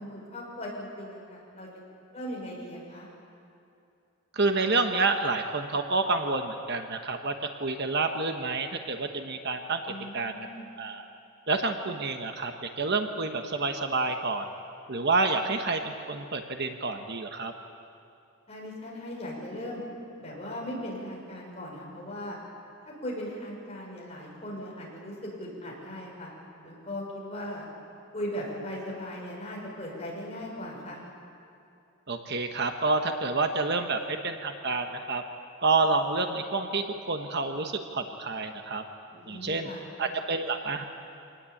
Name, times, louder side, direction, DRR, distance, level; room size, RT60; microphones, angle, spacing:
voice 1, 0.0-1.7 2.1-3.1 9.9-10.7 18.5-19.8 20.2-22.4 22.8-26.3 26.6-27.7 28.1-31.0 39.1-39.9, equal, 30° left, -3 dB, 6.2 m, -38 dB
voice 2, 4.3-7.3 7.6-9.8 10.1-10.3 10.8-11.0 11.5-14.4 14.9-17.5 32.1-35.2 35.6-38.8 39.3-39.7 40.0-40.8, right 3 dB, 50° right, 5 dB, 1.2 m, -28 dB
25.0 x 19.0 x 8.6 m, 2.6 s
head